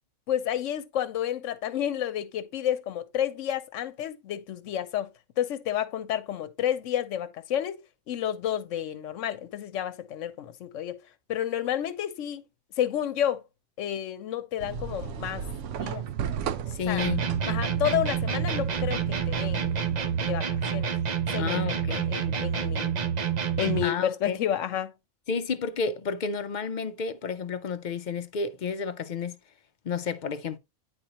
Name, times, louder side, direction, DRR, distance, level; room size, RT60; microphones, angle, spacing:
voice 1, 0.3-5.1 5.4-7.8 8.1-11.0 11.3-12.4 12.8-13.4 13.8-15.4 15.8-16.1 16.9-17.1 17.5-19.8 20.3-20.9 21.3-22.9 23.6-24.9, left 10 dB, 80° left, 1.1 m, -30 dB
sound 1, 14.6-20.3, right 8 dB, 75° right, 0.9 m, -35 dB
voice 2, 16.7-17.2 21.4-22.1 23.8-24.4 25.3-29.4 29.8-30.6, left 5 dB, 50° left, 0.6 m, -31 dB
sound 2, 17.0-24.0, right 7 dB, 45° right, 0.7 m, -28 dB
9.8 x 4.2 x 2.9 m
omnidirectional pair, 1.3 m